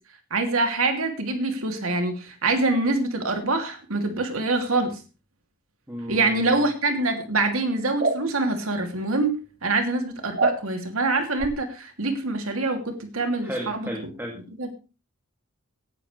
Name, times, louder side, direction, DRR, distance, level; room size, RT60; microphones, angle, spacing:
voice 1, 0.3-5.0 6.1-9.3 9.6-13.9 14.6-14.7, right 3 dB, 85° right, 5 dB, 2.8 m, -25 dB
voice 2, 5.9-6.7 13.4-14.3, equal, 10° right, -1 dB, 2.4 m, -33 dB
sound 1, 8.0-8.2 10.4-10.6 11.4-11.5, right 3 dB, 45° right, 1.2 m, -23 dB
18.0 x 11.0 x 3.3 m, 0.34 s
head